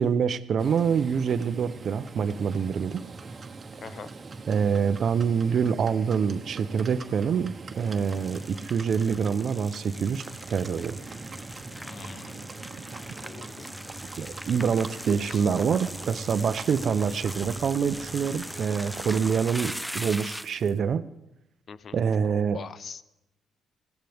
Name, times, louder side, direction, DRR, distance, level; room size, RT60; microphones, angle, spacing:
voice 1, 0.0-3.0 4.5-11.0 14.2-21.0 21.9-22.6, right 6 dB, 55° right, 13 dB, 0.8 m, -26 dB
Livestock farm animals working animals, 0.6-19.6, right 3 dB, 40° right, 1.2 m, -42 dB
voice 2, 3.8-4.1 11.7-13.8 15.3-15.4 21.7-22.0 22.3-23.0, left 6 dB, 50° left, 15 dB, 0.7 m, -44 dB
sound 1, 7.7-20.7, equal, ahead, 0.5 m, -40 dB
21.0 x 16.0 x 3.5 m, 0.91 s
cardioid pair, 90°, 0 cm